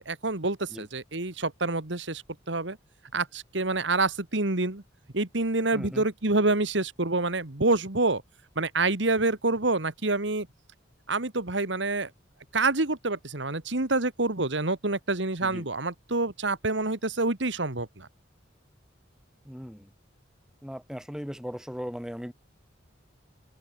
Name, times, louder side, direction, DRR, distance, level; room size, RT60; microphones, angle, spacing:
voice 1, 0.0-2.8 3.1-4.8 5.1-8.2 8.6-10.5 11.1-12.1 12.5-18.1, right 2 dB, 70° right, 2.1 m, -27 dB
voice 2, 5.7-6.1 15.4-15.7 19.5-19.9 20.6-22.3, equal, 5° right, 1.8 m, -38 dB
open air
head